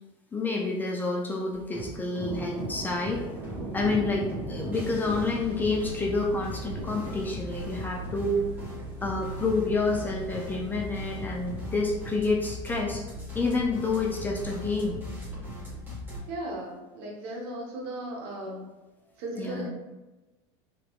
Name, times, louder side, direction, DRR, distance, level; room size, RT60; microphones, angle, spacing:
voice 1, 0.3-3.2 3.7-8.5 9.0-13.0 13.3-15.0 19.4-19.7, left 3 dB, 10° left, -1 dB, 0.3 m, -28 dB
sound 1, 1.5-16.2, equal, 15° right, 1.4 m, -38 dB
sound 2, 2.2-12.1, right 2 dB, 30° right, 0.8 m, -41 dB
voice 2, 16.3-18.7 19.2-19.7, right 1 dB, 65° right, -1 dB, 1.0 m, -36 dB
3.5 x 2.8 x 2.3 m, 1.1 s
supercardioid pair, 150°, 15 cm